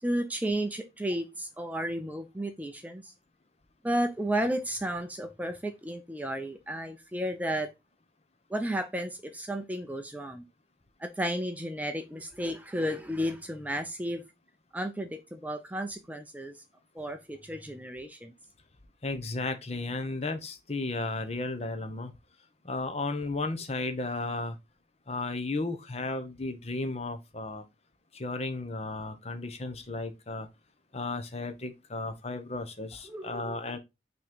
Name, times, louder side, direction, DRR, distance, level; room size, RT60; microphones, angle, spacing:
voice 1, 0.0-3.1 3.8-7.7 8.5-10.4 11.0-14.2 14.7-16.6 16.9-18.3 33.1-33.6, right 1 dB, 10° right, 0.5 m, -33 dB
voice 2, 19.0-22.1 22.6-24.6 25.1-27.6 28.1-30.5 30.9-33.8, left 2 dB, 35° left, 0.8 m, -34 dB
6.0 x 3.0 x 5.1 m
head